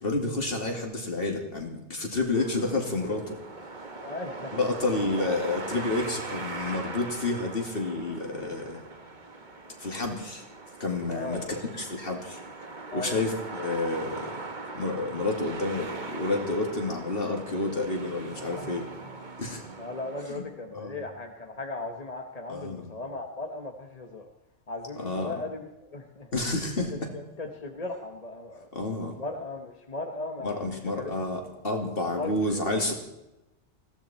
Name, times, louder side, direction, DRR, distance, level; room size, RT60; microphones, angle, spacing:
voice 1, 0.0-3.4 4.5-8.8 9.8-10.4 10.8-12.4 12.9-14.3 14.7-18.8 19.4-19.6 20.3-20.5 20.7-21.0 22.5-23.0 25.0-25.3 26.3-27.1 28.7-29.2 30.4-32.9, left 2 dB, 50° left, 2 dB, 2.9 m, -30 dB
sound 1, 2.3-20.2, right 3 dB, 40° right, 1.5 m, -40 dB
voice 2, 4.0-4.7 11.1-11.4 12.9-13.2 18.5-18.8 19.8-24.3 24.7-26.3 27.1-28.7 29.2-31.1 32.2-32.8, left 2 dB, 35° left, 4 dB, 1.2 m, -37 dB
20.5 x 16.0 x 4.4 m, 0.93 s
omnidirectional pair, 1.2 m